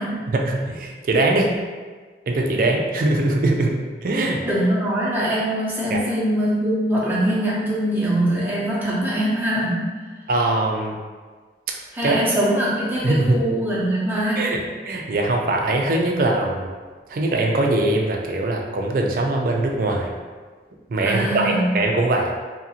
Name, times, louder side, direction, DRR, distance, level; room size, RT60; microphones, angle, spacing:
voice 1, 0.3-1.5 2.3-3.7 4.0-4.4 5.9-6.0 10.3-11.0 12.0-12.2 13.0-13.4 14.4-14.6 14.8-16.7 17.1-20.1 20.9-22.3, right 2 dB, 50° right, 1 dB, 0.4 m, -21 dB
voice 2, 4.4-9.8 11.9-14.5 21.0-21.7, right 1 dB, 10° right, -7 dB, 0.6 m, -22 dB
2.8 x 2.5 x 2.7 m, 1.4 s
head